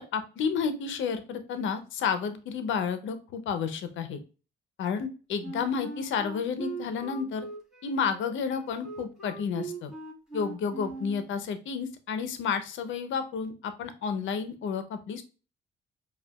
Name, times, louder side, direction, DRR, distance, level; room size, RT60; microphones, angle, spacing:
voice 1, 0.0-4.2 4.8-7.5 7.8-9.9 10.3-15.2, left 6 dB, 75° left, 9 dB, 0.7 m, -31 dB
Wind instrument woodwind instrument, 5.4-11.3, right 3 dB, 5° right, 1.6 m, -40 dB
4.9 x 2.4 x 2.3 m, 0.34 s
cardioid pair, 90°, 20 cm